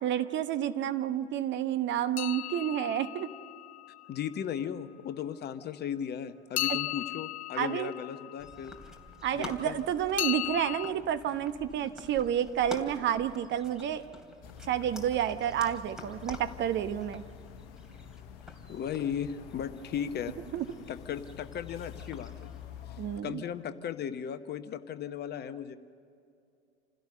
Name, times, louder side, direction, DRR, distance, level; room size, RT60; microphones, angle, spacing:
voice 1, 0.0-3.3 6.7-6.8 7.5-7.9 9.2-14.0 14.7-17.2 20.5-20.7 23.0-23.4, right 10 dB, 35° right, 11 dB, 1.0 m, -30 dB
sound 1, 2.2-4.2 6.6-8.9 10.2-10.9, left 15 dB, 75° left, 0.5 m, -36 dB
voice 2, 4.1-8.7 9.3-9.8 18.7-20.3 20.9-22.5 23.2-25.8, left 8 dB, 30° left, 11 dB, 1.0 m, -36 dB
sound 2, 8.4-22.9, left 2 dB, ahead, 2.8 m, -48 dB
sound 3, 14.4-23.2, left 10 dB, 60° left, 1.1 m, -48 dB
28.0 x 16.5 x 6.8 m, 2.5 s
figure-of-eight pair, 80°, 33 cm